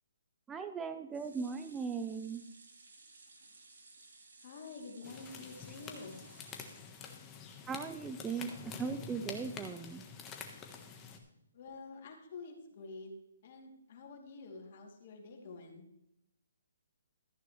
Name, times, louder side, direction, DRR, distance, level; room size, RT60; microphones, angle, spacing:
voice 1, 0.5-2.4 7.7-8.5 8.8-10.0, right 5 dB, 10° right, 8 dB, 0.5 m, -38 dB
sound 1, 1.1-7.4 7.9-8.0 8.3-8.4, right 3 dB, 75° right, 3.1 m, -59 dB
voice 2, 4.4-6.2 11.5-13.1 13.4-15.8, left 3 dB, 45° left, 1 dB, 2.8 m, -48 dB
sound 2, 5.0-11.2, left 6 dB, 15° left, 1.3 m, -48 dB
14.5 x 9.3 x 3.2 m, 0.82 s
hypercardioid pair, 155°, 0 cm